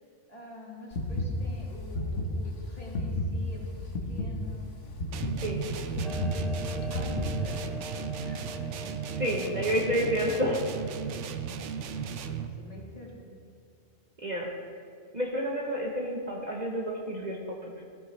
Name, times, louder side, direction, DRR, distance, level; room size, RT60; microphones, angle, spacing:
voice 1, 0.3-4.7 6.2-9.8 10.1-10.5 11.4-12.1 12.5-13.3, left 1 dB, 35° left, -4 dB, 1.9 m, -47 dB
sound 1, 0.9-7.7, left 1 dB, 85° left, 1.5 m, -32 dB
sound 2, 5.1-12.6, right 7 dB, 85° right, 0.9 m, -36 dB
Clock, 6.0-11.0, left 3 dB, ahead, 0.4 m, -43 dB
voice 2, 9.2-10.6 14.2-14.5 15.1-17.8, equal, 40° right, -1 dB, 1.0 m, -30 dB
15.0 x 9.2 x 3.2 m, 2.3 s
omnidirectional pair, 1.2 m